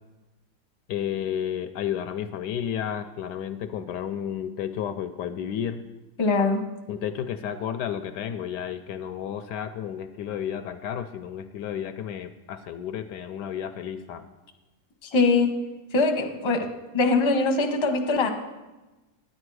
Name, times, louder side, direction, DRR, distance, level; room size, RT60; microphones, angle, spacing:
voice 1, 0.9-5.8 6.9-14.3, left 9 dB, 75° left, 10 dB, 1.1 m, -32 dB
voice 2, 6.2-6.6 15.1-15.5 15.9-16.7 16.9-18.3, left 3 dB, 25° left, 4 dB, 0.6 m, -22 dB
10.5 x 9.6 x 4.7 m, 1.1 s
omnidirectional pair, 2.0 m